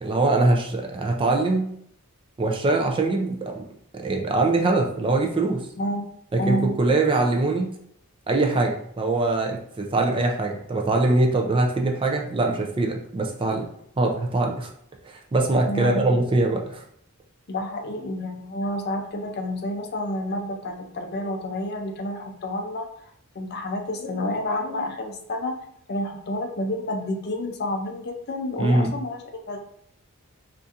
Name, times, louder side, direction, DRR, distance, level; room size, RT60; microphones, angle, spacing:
voice 1, 0.0-1.7 2.4-3.6 3.9-5.6 6.3-7.7 8.3-13.7 14.0-14.7 15.0-16.8 28.6-28.9, right 2 dB, 25° right, 2 dB, 0.4 m, -22 dB
voice 2, 5.8-6.1 6.4-6.7 15.7-16.0 17.5-22.9 23.3-25.6 25.9-29.6, left 1 dB, 45° left, 3 dB, 0.5 m, -29 dB
3.9 x 2.5 x 2.5 m, 0.69 s
head